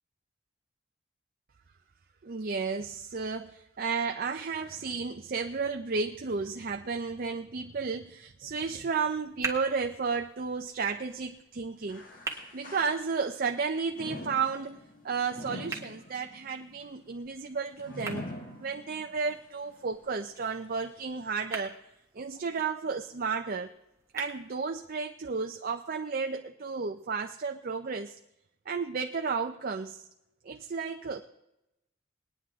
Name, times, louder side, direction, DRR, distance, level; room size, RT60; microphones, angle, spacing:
voice 1, 2.2-12.1 12.5-14.8 15.0-18.2 18.6-21.8 22.1-23.7 24.1-28.2 28.7-30.1 30.4-31.2, right 5 dB, 45° right, 4 dB, 0.5 m, -33 dB
sound 1, 9.0-25.0, right 4 dB, 15° right, 1.6 m, -46 dB
sound 2, 11.9-13.5 13.9-19.2 19.7-19.8 20.6-20.7, left 1 dB, 45° left, 1.8 m, -44 dB
20.5 x 9.7 x 3.6 m, 0.88 s
head